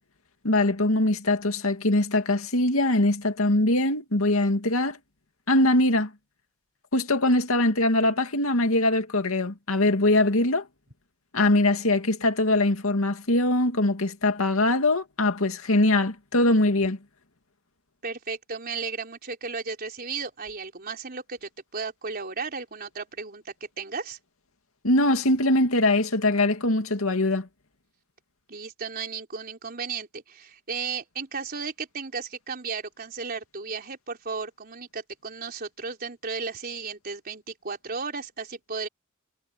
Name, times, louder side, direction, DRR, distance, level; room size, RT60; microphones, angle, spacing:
voice 1, 0.4-5.0 5.5-6.1 6.9-10.6 11.3-17.0 24.8-27.5, left 2 dB, 75° left, 2.4 m, -22 dB
voice 2, 18.0-24.2 28.5-38.9, right 5 dB, 45° right, 4.0 m, -34 dB
head